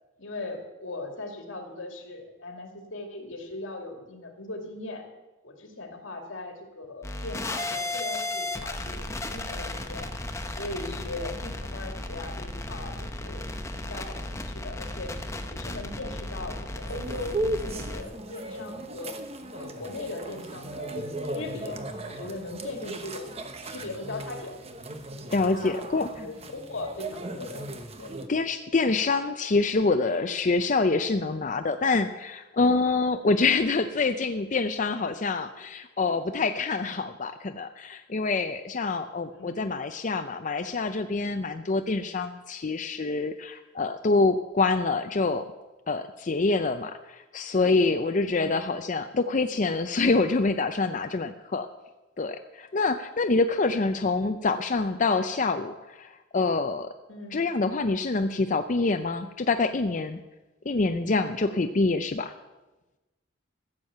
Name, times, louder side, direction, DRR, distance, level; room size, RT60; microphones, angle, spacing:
voice 1, 0.2-5.1 5.4-10.1 10.6-13.4 13.8-15.1 15.5-19.2 19.5-21.8 22.1-23.3 23.6-24.6 25.4-27.6 28.0-28.1 39.3-39.6 48.3-48.6 57.1-57.4, left 2 dB, 80° left, 3 dB, 2.4 m, -39 dB
sound 1, 7.0-18.0, left 2 dB, 15° left, 0.9 m, -35 dB
sound 2, 16.9-28.3, right 1 dB, 30° right, 1.0 m, -36 dB
voice 2, 25.3-26.1 28.3-45.4 45.9-51.7 52.2-56.9 57.3-60.2 60.7-62.3, left 3 dB, 40° left, 7 dB, 0.5 m, -26 dB
15.0 x 7.3 x 7.7 m, 1.1 s
head